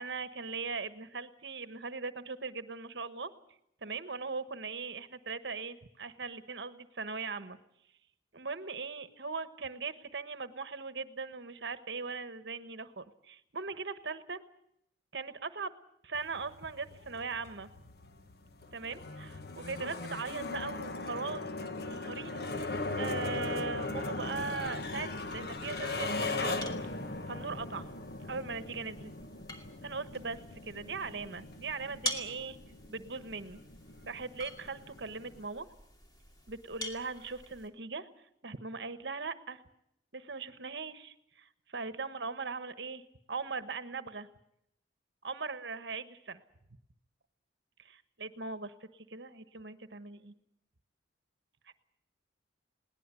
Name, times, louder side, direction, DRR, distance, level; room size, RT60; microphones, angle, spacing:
voice 1, 0.0-3.3 3.8-7.6 8.3-14.4 15.1-15.7 16.0-17.7 18.7-21.4 21.7-22.7 23.0-25.1 25.3-26.6 27.3-27.9 28.3-29.1 29.8-32.6 32.9-33.6 34.1-35.7 36.5-38.1 38.4-39.6 40.1-43.0 43.3-44.3 45.2-46.4 48.2-48.7 49.1-50.3, right 4 dB, 65° right, 11 dB, 1.2 m, -39 dB
sound 1, 16.1-35.5, left 3 dB, 55° left, 1.3 m, -39 dB
sound 2, 24.2-37.7, left 1 dB, 20° left, 2.3 m, -46 dB
21.0 x 18.5 x 8.3 m, 0.77 s
head